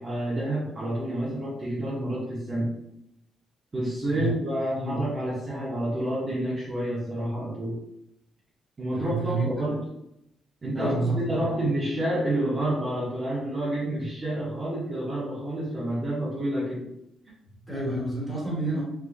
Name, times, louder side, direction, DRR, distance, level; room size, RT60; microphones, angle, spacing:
voice 1, 0.0-2.8 3.7-7.8 8.8-9.8 10.6-16.9, right 1 dB, 25° right, -7 dB, 0.8 m, -29 dB
voice 2, 8.9-9.4 10.7-11.4 17.7-18.8, right 2 dB, 5° left, -6 dB, 1.3 m, -29 dB
3.4 x 2.5 x 2.4 m, 0.83 s
cardioid pair, 145°, 0 cm